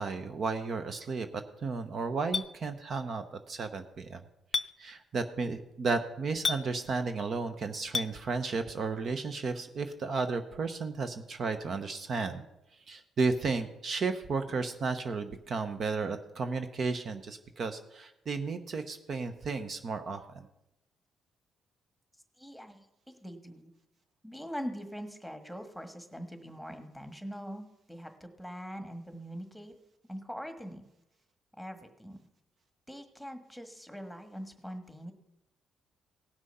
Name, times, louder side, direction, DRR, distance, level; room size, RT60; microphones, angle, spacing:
voice 1, 0.0-4.2 4.8-12.4 12.9-20.5, right 4 dB, 50° right, 8 dB, 0.9 m, -33 dB
Chink clink, 2.3-2.5 4.5-4.7 6.4-6.6 7.9-8.1, left 5 dB, 40° left, 0.5 m, -29 dB
voice 2, 22.4-22.9 23.2-23.7 24.2-29.7 30.1-30.8 31.5-32.2 32.9-35.1, equal, ahead, 6 dB, 1.5 m, -42 dB
17.5 x 6.2 x 5.5 m, 0.87 s
cardioid pair, 90°, 0 cm